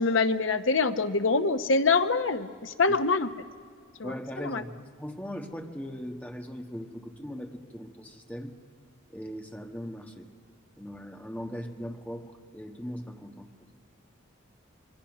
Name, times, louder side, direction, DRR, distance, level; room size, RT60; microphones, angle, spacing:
voice 1, 0.0-3.3 4.0-4.6, left 4 dB, 70° left, 9 dB, 0.9 m, -25 dB
voice 2, 4.0-8.5 9.1-10.3 10.8-13.5, equal, 5° left, 4 dB, 1.4 m, -39 dB
27.0 x 22.5 x 6.2 m, 2.1 s
head